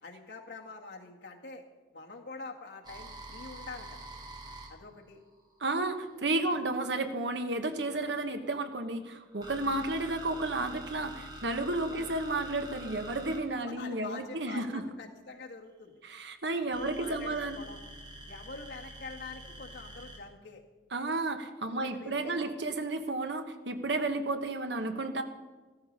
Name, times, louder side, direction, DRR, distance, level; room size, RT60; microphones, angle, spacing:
voice 1, 0.0-1.6 1.9-4.1 4.7-5.2 6.5-6.6 11.9-12.1 13.7-15.9 16.6-17.8 18.3-20.6 21.7-22.5, left 3 dB, 80° left, 1 dB, 1.9 m, -45 dB
sound 1, 2.8-6.3 7.4-14.8 16.7-20.2, right 1 dB, 25° right, 1.6 m, -47 dB
voice 2, 5.6-14.8 16.0-17.6 20.9-25.2, right 2 dB, 85° right, 7 dB, 1.2 m, -32 dB
14.5 x 13.5 x 5.4 m, 1.3 s
head